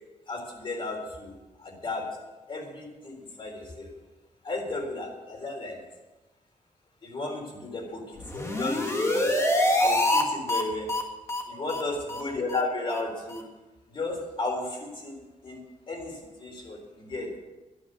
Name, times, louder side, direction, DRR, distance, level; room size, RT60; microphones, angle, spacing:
voice 1, 0.3-2.2 2.5-3.9 4.4-5.8 7.0-9.4 9.8-10.9 11.5-13.5 13.9-17.4, left 2 dB, 40° left, 1 dB, 3.7 m, -34 dB
sound 1, 8.2-10.2 10.5-10.6 10.9-11.0 11.3-11.4 11.7-11.8 12.1-12.2 12.5-12.6 12.9-13.0 13.3-13.4, left 1 dB, 20° left, 1.7 m, -25 dB
11.5 x 10.0 x 6.7 m, 1.1 s
wide cardioid pair, 140°, 13 cm